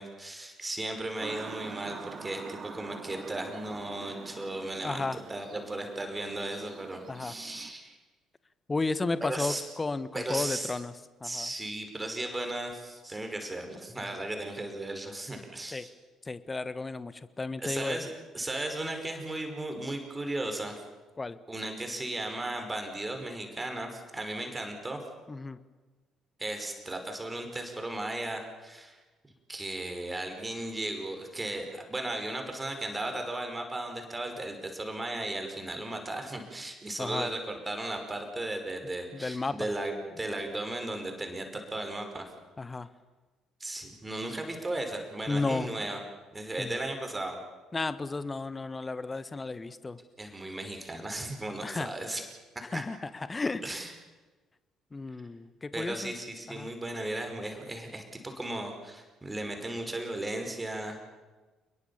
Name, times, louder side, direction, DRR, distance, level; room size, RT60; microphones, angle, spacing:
voice 1, 0.0-8.0 9.2-9.6 10.1-10.7 11.2-15.9 17.6-18.1 18.3-20.8 21.5-25.0 26.4-29.0 29.5-42.3 43.6-46.0 46.3-47.4 50.2-52.3 52.7-52.8 53.6-53.9 55.7-61.1, right 1 dB, 15° right, 4 dB, 5.6 m, -36 dB
sound 1, 1.2-7.7, right 5 dB, 40° right, 2.3 m, -45 dB
voice 2, 4.8-5.2 7.1-7.3 8.7-10.9 11.2-11.5 15.7-15.9 16.2-18.1 21.2-21.4 25.3-25.6 37.0-37.3 39.1-39.7 42.6-42.9 45.3-45.7 46.6-46.8 47.7-50.0 51.6-51.9 52.7-53.7 54.9-56.1 56.5-56.7, left 3 dB, 25° left, 15 dB, 1.5 m, -33 dB
29.0 x 22.0 x 7.3 m, 1.2 s
figure-of-eight pair, 45°, 0 cm